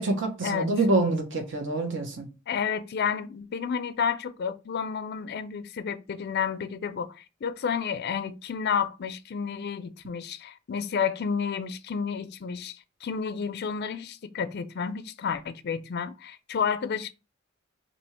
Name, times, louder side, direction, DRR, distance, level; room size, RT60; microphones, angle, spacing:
voice 1, 0.0-2.3, right 2 dB, 65° right, 0.9 m, -26 dB
voice 2, 2.5-12.7 13.0-17.1, left 6 dB, 55° left, 0.4 m, -31 dB
2.8 x 2.6 x 4.3 m
head